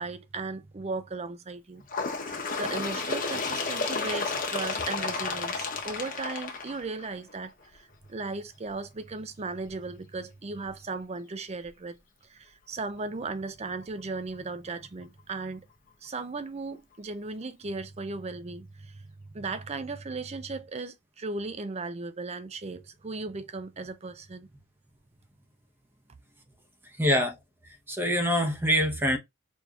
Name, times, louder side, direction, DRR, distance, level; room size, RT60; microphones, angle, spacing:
voice 1, 0.0-1.8 2.2-15.7 16.0-19.0 19.3-24.5, right 3 dB, 30° right, 0.5 m, -36 dB
Bird, 1.9-7.3 8.2-8.3 8.7-8.8 9.7-9.8 10.7-10.8 11.7-11.8, left 4 dB, 40° left, 0.9 m, -32 dB
voice 2, 27.0-27.4 27.9-29.2, equal, 10° right, 0.9 m, -24 dB
4.4 x 3.3 x 2.4 m
head